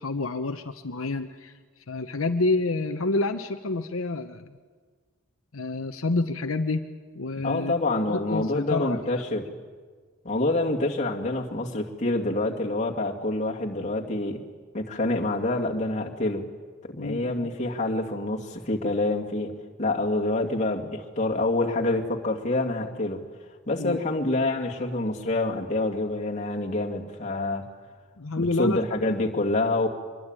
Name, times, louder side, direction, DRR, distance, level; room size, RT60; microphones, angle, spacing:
voice 1, 0.0-1.5 1.9-4.5 5.5-6.8 7.1-7.7 8.1-9.0 17.0-17.5 23.8-24.0 28.2-28.8, left 3 dB, 80° left, 6 dB, 1.0 m, -28 dB
voice 2, 7.4-9.5 10.2-14.4 14.7-16.5 16.8-19.5 19.8-23.2 23.7-27.7 28.4-29.9, left 2 dB, 35° left, -1 dB, 2.4 m, -27 dB
24.5 x 22.0 x 9.0 m, 1.5 s
head